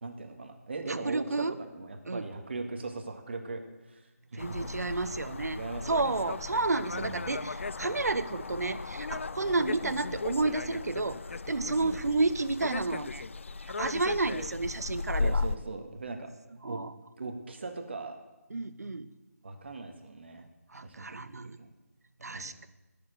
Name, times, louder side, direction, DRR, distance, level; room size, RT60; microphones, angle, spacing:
voice 1, 0.0-3.6 3.9-4.7 5.5-6.3 6.9-7.4 11.8-12.0 15.2-16.3 16.7-16.8 17.2-18.2 19.4-20.5 20.8-21.2 21.6-21.7 22.3-22.7, right 3 dB, 45° right, 5 dB, 1.8 m, -39 dB
voice 2, 0.9-1.5 2.1-2.2 4.3-11.2 11.5-13.3 13.6-15.4 16.6-16.9 18.5-19.1 20.7-21.6 22.2-22.7, right 3 dB, 80° right, 14 dB, 1.0 m, -31 dB
sound 1, 4.4-15.6, left 4 dB, 50° left, 0.4 m, -36 dB
18.5 x 7.2 x 7.8 m, 1.1 s
figure-of-eight pair, 170°, 9 cm